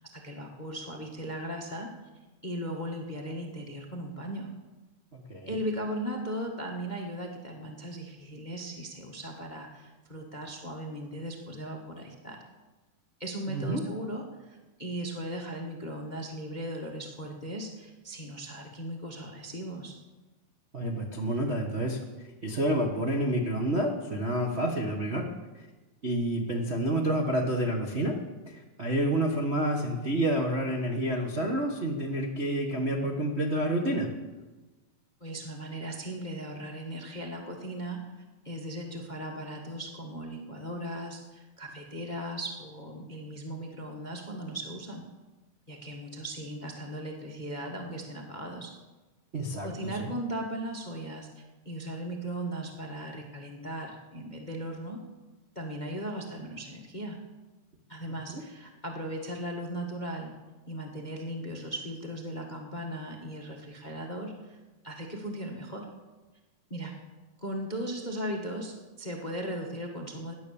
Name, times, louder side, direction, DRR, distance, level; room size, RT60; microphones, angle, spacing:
voice 1, 0.0-1.9 2.4-4.5 5.5-12.4 13.2-19.9 35.2-45.0 45.7-48.7 49.6-55.0 55.5-57.2 57.9-60.3 60.7-64.6 64.8-65.9 66.7-66.9 67.4-70.3, right 1 dB, 45° left, 2 dB, 0.5 m, -37 dB
voice 2, 5.1-5.5 13.5-13.8 20.7-22.0 22.4-25.3 26.0-28.2 28.4-34.1 49.3-50.1 58.3-58.4, right 1 dB, 90° right, 1 dB, 0.5 m, -29 dB
17.0 x 10.5 x 7.0 m, 1.2 s
omnidirectional pair, 3.6 m